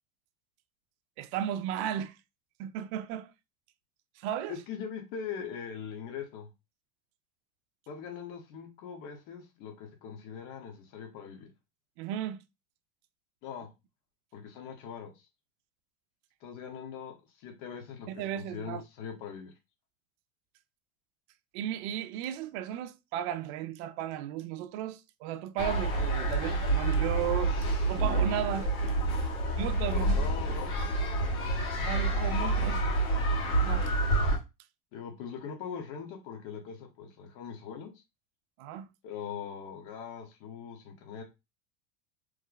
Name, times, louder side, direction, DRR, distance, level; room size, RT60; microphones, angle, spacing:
voice 1, 1.2-2.2 2.6-3.3 4.2-4.6 12.0-12.4 18.1-18.8 21.5-27.6 27.9-28.7 29.6-30.2 31.8-32.8 33.5-33.9 38.6-38.9, right 10 dB, 55° right, 0.5 m, -35 dB
voice 2, 4.5-6.5 7.9-11.5 13.4-13.7 14.3-15.3 16.4-19.5 29.9-30.9 34.9-37.9 39.0-41.2, left 7 dB, 45° left, 1.0 m, -41 dB
sound 1, 25.6-34.4, right 2 dB, 75° left, 1.7 m, -28 dB
3.2 x 2.2 x 3.8 m
supercardioid pair, 130°, 42 cm